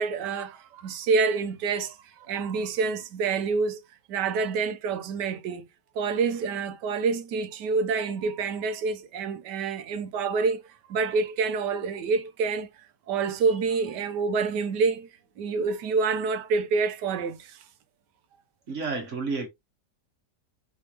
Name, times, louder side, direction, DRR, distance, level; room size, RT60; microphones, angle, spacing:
voice 1, 0.0-1.9 2.3-3.8 4.1-5.6 6.0-10.6 10.9-12.7 13.1-15.1 15.4-17.6, right 4 dB, 80° right, 1.3 m, -27 dB
voice 2, 18.7-19.5, right 4 dB, 45° right, 1.6 m, -30 dB
4.9 x 3.4 x 2.8 m
omnidirectional pair, 1.8 m